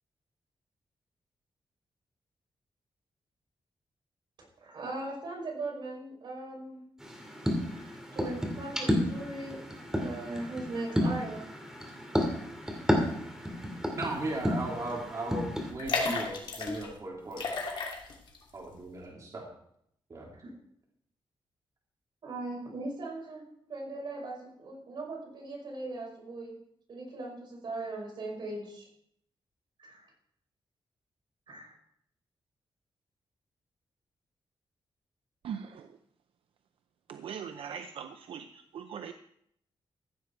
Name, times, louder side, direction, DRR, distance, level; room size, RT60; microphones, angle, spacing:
voice 1, 4.6-6.8 7.7-9.7 10.0-11.5 20.4-20.5 22.2-26.5 26.9-28.9 29.8-30.1 31.5-31.7, right 2 dB, 60° right, -2 dB, 5.8 m, -39 dB
sound 1, 7.0-15.7, equal, 5° right, 2.3 m, -32 dB
voice 2, 14.0-17.5 18.5-19.4 20.1-20.3, right 2 dB, 40° right, -3 dB, 3.0 m, -37 dB
sound 2, 14.4-14.6 14.9-15.0 15.7-16.9 17.3-18.4 18.7-18.8, left 3 dB, 60° left, 2.8 m, -33 dB
voice 3, 35.4-35.9 37.1-39.1, right 7 dB, 80° right, 8 dB, 0.6 m, -40 dB
15.0 x 8.7 x 4.5 m, 0.71 s
wide cardioid pair, 175°, 9 cm